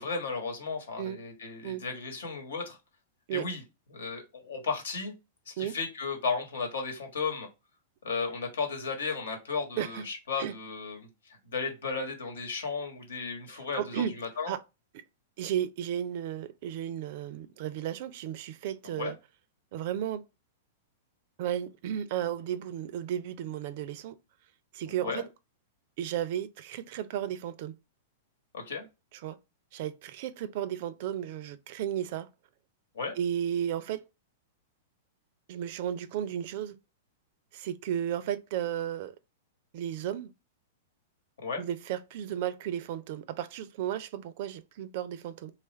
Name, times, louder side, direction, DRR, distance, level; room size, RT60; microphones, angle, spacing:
voice 1, 0.0-2.8 3.3-3.6 3.9-5.1 5.5-7.5 8.0-11.1 11.5-14.5 18.8-19.1 24.9-25.2 28.5-28.9 32.9-33.1 41.4-41.6, left 4 dB, 85° left, 1.2 m, -34 dB
voice 2, 13.5-14.1 14.5-14.6 15.4-19.2 19.7-20.2 21.4-24.2 24.7-25.3 26.0-27.8 29.2-29.4 29.7-32.3 33.2-34.0 35.5-36.7 37.5-39.1 39.7-40.3 41.6-45.5, right 10 dB, 55° right, 0.4 m, -34 dB
3.0 x 2.4 x 4.2 m
hypercardioid pair, 120°, 0 cm